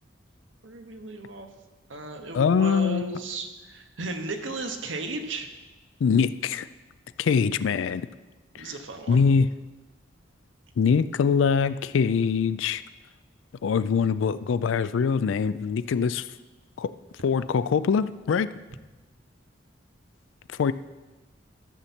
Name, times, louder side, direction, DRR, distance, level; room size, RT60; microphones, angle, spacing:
voice 1, 0.6-1.5 1.9-5.5 8.6-9.2, right 2 dB, 85° right, 5 dB, 1.0 m, -35 dB
voice 2, 2.3-3.1 6.0-6.7 7.2-8.1 8.5-8.7 9.1-9.5 10.8-12.8 13.6-16.3 16.8-16.9 17.2-18.5 20.5-20.7, left 6 dB, 85° left, 15 dB, 0.4 m, -23 dB
13.0 x 7.0 x 4.3 m, 1.2 s
head